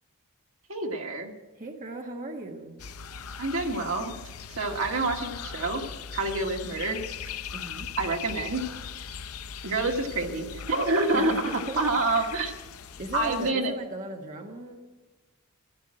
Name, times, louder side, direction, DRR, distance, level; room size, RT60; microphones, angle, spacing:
voice 1, 0.7-1.3 3.4-4.2 4.5-5.8 6.1-7.0 8.0-8.6 9.6-11.3 11.8-12.5 13.1-13.7, right 2 dB, 65° right, 2 dB, 1.9 m, -27 dB
voice 2, 1.6-2.8 7.5-7.9 11.1-11.8 12.1-12.4 13.0-14.8, right 2 dB, 35° right, 1 dB, 1.5 m, -37 dB
sound 1, 2.8-13.5, left 7 dB, 75° left, 0.6 m, -40 dB
15.0 x 11.5 x 7.7 m, 1.3 s
head